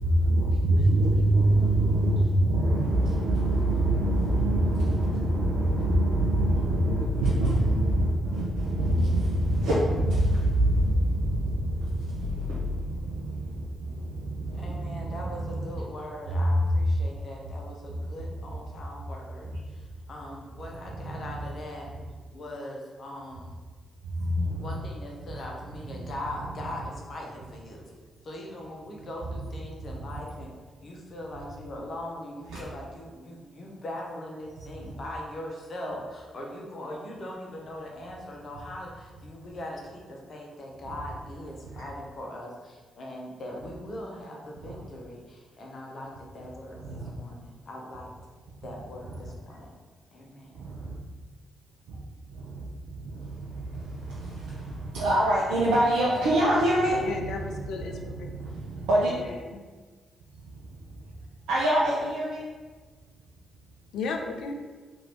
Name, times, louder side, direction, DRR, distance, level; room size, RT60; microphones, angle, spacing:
voice 1, 0.0-15.7 16.4-16.8 17.9-18.0 21.0-21.4 24.0-24.7 25.9-26.2 29.8-30.2 32.5-32.6 41.7-41.8 44.6-44.8 46.7-47.1 49.1-49.2 50.5-50.9 51.9-52.0 52.3-59.3 60.3-61.2 61.5-62.5, right 1 dB, 75° right, -6 dB, 0.5 m, -26 dB
voice 2, 14.5-21.9 22.3-23.5 24.6-27.8 28.2-30.5 30.8-48.1 48.6-49.7 50.1-50.6, left 1 dB, 50° left, -1 dB, 0.8 m, -40 dB
voice 3, 57.0-58.1 59.1-59.6 63.9-64.5, left 4 dB, 70° left, 4 dB, 0.4 m, -34 dB
3.1 x 2.6 x 4.4 m, 1.4 s
hypercardioid pair, 40°, 0 cm